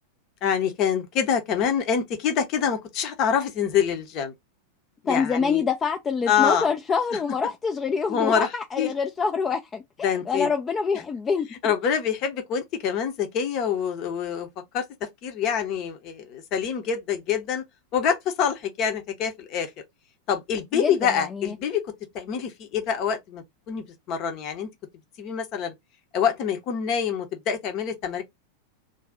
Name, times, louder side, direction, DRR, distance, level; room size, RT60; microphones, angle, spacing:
voice 1, 0.4-4.3 5.0-5.6 6.3-6.7 8.1-8.9 10.0-10.5 11.6-14.5 14.7-14.8 15.2-17.6 17.9-19.7 20.3-24.7 25.2-25.7 26.1-28.2, left 7 dB, 40° left, 0.7 m, -26 dB
voice 2, 5.1-11.7 20.7-21.5, left 5 dB, 20° left, 0.4 m, -26 dB
2.6 x 2.3 x 3.5 m
figure-of-eight pair, 90°, 0 cm